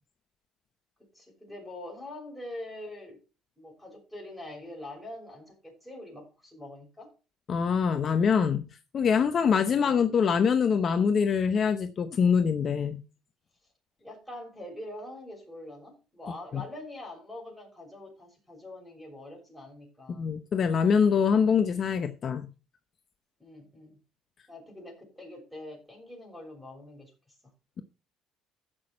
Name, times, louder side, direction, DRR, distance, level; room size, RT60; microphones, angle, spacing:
voice 1, 1.1-3.2 3.6-7.1 9.6-10.0 14.0-20.3 23.4-24.0 24.5-27.5, left 1 dB, ahead, 6.5 m, -44 dB
voice 2, 7.5-8.6 8.9-13.0 16.5-16.6 20.1-22.5, left 6 dB, 40° left, 0.8 m, -24 dB
15.0 x 6.2 x 4.3 m
cardioid pair, 115°, 0 cm